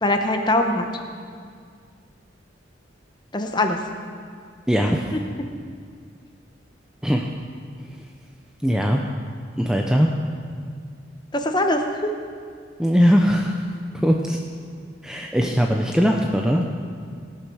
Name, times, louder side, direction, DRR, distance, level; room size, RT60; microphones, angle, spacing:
voice 1, 0.0-0.9 3.3-3.8 5.1-5.5 11.3-12.1, left 1 dB, 20° left, 4 dB, 1.0 m, -22 dB
voice 2, 4.7-5.2 7.0-7.3 7.9-8.0 8.6-9.0 9.6-10.1 12.8-13.6 13.9-14.4 15.0-16.6, equal, 5° right, 1 dB, 0.5 m, -20 dB
16.0 x 8.6 x 6.3 m, 2.1 s
head